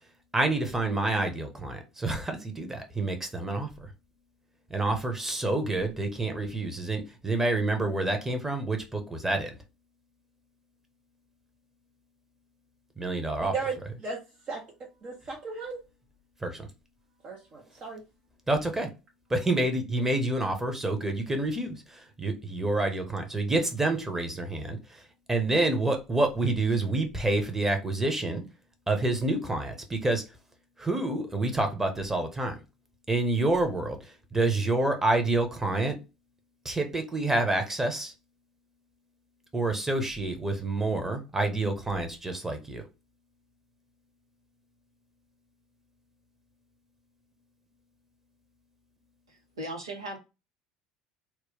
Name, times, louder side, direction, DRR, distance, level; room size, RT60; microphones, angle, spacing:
voice 1, 0.3-3.9 4.7-9.6 13.0-13.5 16.4-16.7 18.5-18.9 19.3-25.0 25.3-28.4 28.9-30.2 30.8-32.6 33.1-36.0 36.6-38.1 39.5-42.8, right 2 dB, 15° right, 1.0 m, -28 dB
voice 2, 13.4-13.8 14.0-14.2 14.5-14.6 15.0-15.8 17.2-18.0, right 4 dB, 45° right, 0.8 m, -35 dB
voice 3, 49.3-50.2, right 1 dB, 85° right, 1.0 m, -38 dB
3.0 x 2.3 x 3.2 m
figure-of-eight pair, 65°, 3 cm